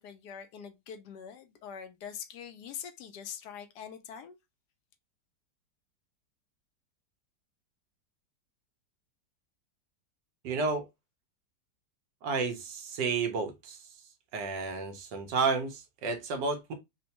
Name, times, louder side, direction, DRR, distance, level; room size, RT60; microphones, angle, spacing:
voice 1, 0.0-4.4, left 8 dB, 75° left, 1.1 m, -44 dB
voice 2, 10.4-10.8 12.2-13.8 14.3-16.7, right 4 dB, 75° right, 1.5 m, -31 dB
5.3 x 2.2 x 2.9 m
omnidirectional pair, 1.9 m